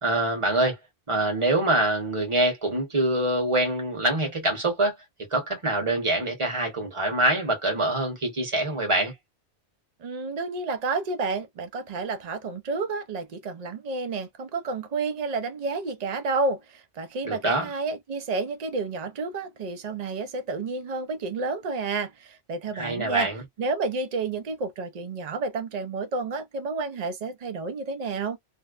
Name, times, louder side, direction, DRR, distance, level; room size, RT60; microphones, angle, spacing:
voice 1, 0.0-0.8 1.1-4.9 5.3-9.1 17.3-17.7 22.7-23.4, right 1 dB, 30° right, 1.0 m, -25 dB
voice 2, 10.0-23.3 23.6-28.4, right 3 dB, 65° right, 0.4 m, -30 dB
2.6 x 2.0 x 2.3 m
omnidirectional pair, 1.2 m